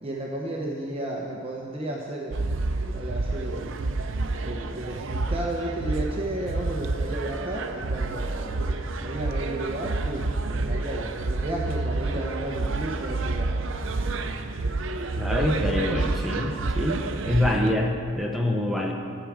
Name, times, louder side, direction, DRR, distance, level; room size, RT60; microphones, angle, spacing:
voice 1, 0.0-2.4 2.8-3.7 4.4-8.5 9.0-13.5, right 1 dB, 30° right, -2 dB, 0.8 m, -33 dB
sound 1, 2.3-17.7, right 2 dB, 65° right, 0.6 m, -29 dB
voice 2, 15.2-18.9, left 1 dB, ahead, 0 dB, 0.8 m, -26 dB
12.5 x 4.9 x 7.3 m, 2.3 s
head